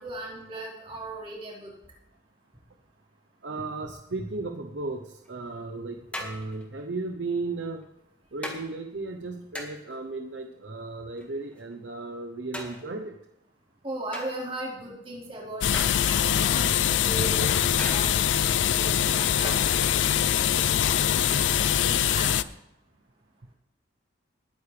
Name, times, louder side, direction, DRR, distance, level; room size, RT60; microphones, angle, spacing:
voice 1, 0.0-1.7 13.8-19.5 19.9-21.5 21.7-22.4, right 1 dB, 30° right, -5 dB, 4.0 m, -38 dB
voice 2, 3.4-5.0 5.3-7.8 8.3-13.1, right 3 dB, 65° right, 4 dB, 0.8 m, -35 dB
sound 1, 5.2-5.3 6.1-6.8 7.7-7.8 8.4-8.6 9.6-10.0 11.2-11.8 12.5-13.1 14.1-14.7 15.7-16.4 17.8-18.3 19.4-19.8 21.5-22.0, left 1 dB, 5° left, 1.7 m, -39 dB
sound 2, 15.6-22.4, left 9 dB, 80° left, 0.4 m, -23 dB
20.5 x 9.7 x 3.3 m, 0.86 s
head